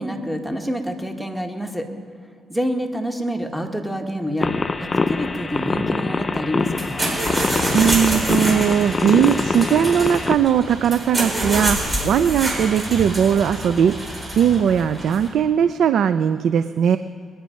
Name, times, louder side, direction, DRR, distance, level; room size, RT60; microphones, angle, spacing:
voice 1, 0.0-1.9 2.5-4.5 4.8-7.1, equal, ahead, 4 dB, 1.7 m, -27 dB
sound 1, 4.4-10.4, left 3 dB, 30° left, 0.6 m, -24 dB
sound 2, 6.7-15.3, right 1 dB, 25° right, 4.2 m, -27 dB
voice 2, 7.4-17.0, right 8 dB, 70° right, 12 dB, 0.4 m, -19 dB
21.0 x 10.0 x 5.2 m, 2.3 s
cardioid pair, 90°, 0 cm